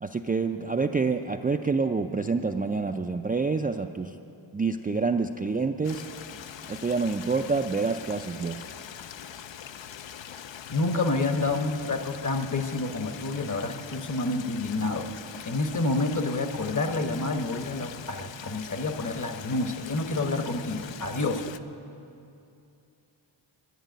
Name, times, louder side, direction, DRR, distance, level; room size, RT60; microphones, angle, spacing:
voice 1, 0.0-4.1 4.5-6.0 6.7-8.6, right 4 dB, 20° right, 4 dB, 0.3 m, -27 dB
Stream, 5.8-21.6, left 9 dB, 65° left, 0.6 m, -43 dB
voice 2, 10.7-15.1 15.4-21.4, left 2 dB, 40° left, 6 dB, 1.1 m, -28 dB
11.5 x 9.8 x 9.1 m, 2.7 s
wide cardioid pair, 85°, 47 cm